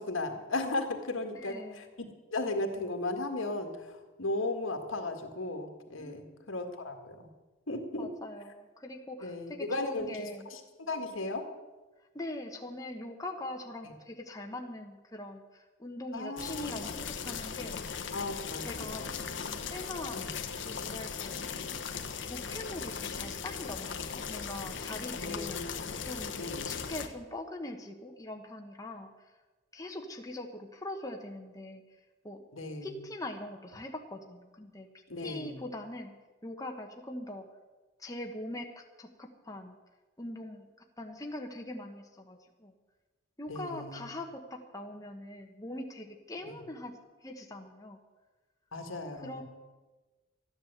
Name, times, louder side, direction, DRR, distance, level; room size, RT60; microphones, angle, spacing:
voice 1, 0.0-2.1 2.3-3.8 4.2-7.3 7.7-8.1 9.2-11.4 16.1-16.7 18.1-19.1 20.1-20.3 25.2-25.8 26.4-26.7 32.5-32.9 35.1-35.6 43.5-44.0 46.5-46.6 48.7-49.4, left 2 dB, 85° left, 5 dB, 1.9 m, -36 dB
voice 2, 1.3-1.9 6.0-6.6 8.0-10.5 12.1-18.0 18.6-19.1 19.7-20.2 20.6-21.8 22.3-25.6 26.0-26.4 26.6-29.1 29.7-31.8 32.2-32.4 32.8-34.9 35.2-36.1 36.4-37.4 38.0-39.8 40.2-40.7 41.0-42.7 43.4-48.0 49.1-49.4, left 1 dB, 15° left, 2 dB, 1.2 m, -42 dB
sound 1, 16.4-27.1, left 6 dB, 70° left, 1.2 m, -38 dB
13.5 x 10.5 x 8.0 m, 1.2 s
head